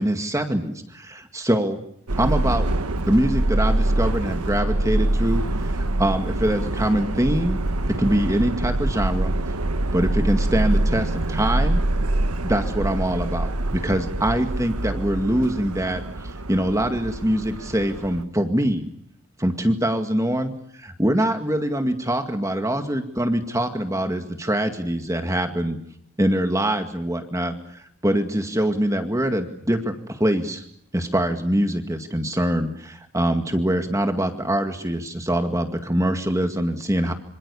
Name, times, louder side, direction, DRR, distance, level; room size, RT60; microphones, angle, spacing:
voice 1, 0.0-1.8 2.2-2.7 3.1-7.6 8.0-9.3 9.9-11.8 12.4-18.9 19.4-25.8 26.2-30.6 30.9-37.1, right 1 dB, 15° right, 6 dB, 2.0 m, -24 dB
Subway metro underground, 2.1-18.2, right 1 dB, 90° right, 1.3 m, -25 dB
27.0 x 27.0 x 7.0 m, 0.70 s
head